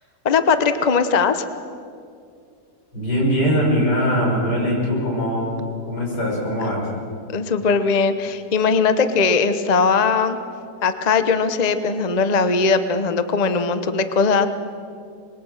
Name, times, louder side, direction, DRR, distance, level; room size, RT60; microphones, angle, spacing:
voice 1, 0.2-1.4 7.3-10.4 10.8-14.5, left 5 dB, 30° left, 9 dB, 0.9 m, -19 dB
voice 2, 2.9-5.5 5.9-6.9, equal, 90° left, -3 dB, 6.7 m, -21 dB
25.5 x 21.5 x 6.6 m, 2.4 s
omnidirectional pair, 1.8 m